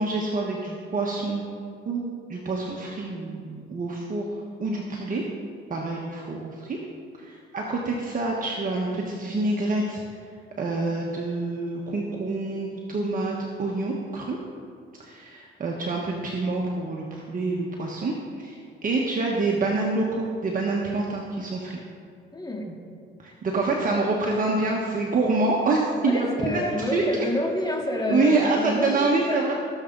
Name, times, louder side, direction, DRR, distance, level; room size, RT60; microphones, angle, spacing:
voice 1, 0.0-1.5 1.8-4.3 4.6-5.2 5.7-6.8 7.2-10.0 10.6-14.4 15.0-21.8 23.2-27.0 28.1-29.5, right 3 dB, 45° right, -2 dB, 1.4 m, -26 dB
voice 2, 22.3-22.8 26.1-29.4, left 1 dB, 20° left, 0 dB, 2.0 m, -28 dB
18.0 x 7.1 x 4.0 m, 2.2 s
cardioid pair, 90°, 20 cm